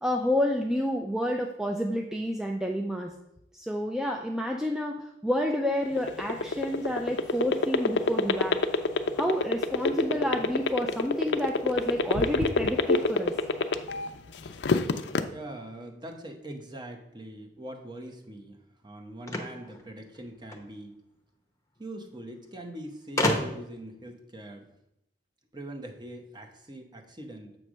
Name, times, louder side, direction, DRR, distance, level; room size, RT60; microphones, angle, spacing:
voice 1, 0.0-3.1 3.5-8.6 9.2-13.3, equal, 5° right, 2 dB, 0.4 m, -29 dB
sound 1, 5.8-14.1 14.5-15.2, left 3 dB, 70° left, 0.5 m, -24 dB
voice 2, 15.3-18.6 18.8-21.0 21.8-24.7 25.5-27.6, right 1 dB, 25° right, 3 dB, 0.9 m, -42 dB
sound 2, 19.2-20.7 21.8-21.9 22.1-22.2 23.2-23.8, left 1 dB, 15° left, 0.8 m, -29 dB
7.5 x 3.3 x 6.1 m, 0.83 s
head